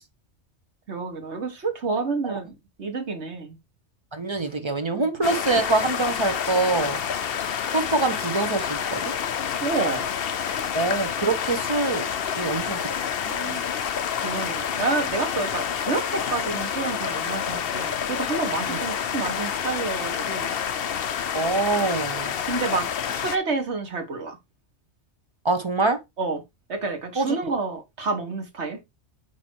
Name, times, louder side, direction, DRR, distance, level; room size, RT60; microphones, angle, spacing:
voice 1, 0.9-3.6 4.9-5.1 9.6-10.1 13.2-13.6 14.2-20.6 22.4-24.4 26.2-26.4 26.7-28.8, right 4 dB, 65° right, 1.8 m, -29 dB
voice 2, 4.1-7.0 7.7-9.1 10.7-12.1 12.4-12.8 21.3-22.3 25.4-26.0 27.2-27.4, right 3 dB, 25° right, 0.9 m, -24 dB
sound 1, 5.2-23.4, left 8 dB, 60° left, 0.8 m, -28 dB
8.9 x 3.0 x 4.6 m
omnidirectional pair, 1.2 m